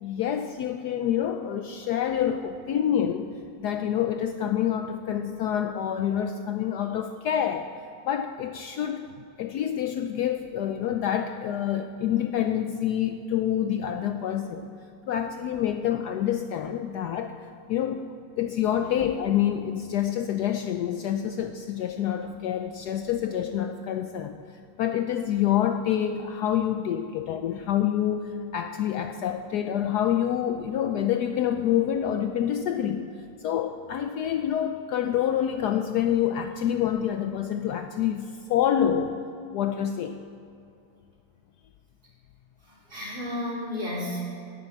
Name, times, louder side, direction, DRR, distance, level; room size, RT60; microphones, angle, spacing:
voice 1, 0.0-3.3 3.6-7.7 8.0-9.1 9.4-14.7 15.1-24.4 24.8-33.1 33.4-39.2 39.5-40.2, left 10 dB, 75° left, 7 dB, 1.0 m, -27 dB
voice 2, 42.7-44.2, left 1 dB, 30° right, -4 dB, 3.1 m, -32 dB
11.0 x 8.9 x 8.4 m, 2.5 s
omnidirectional pair, 2.1 m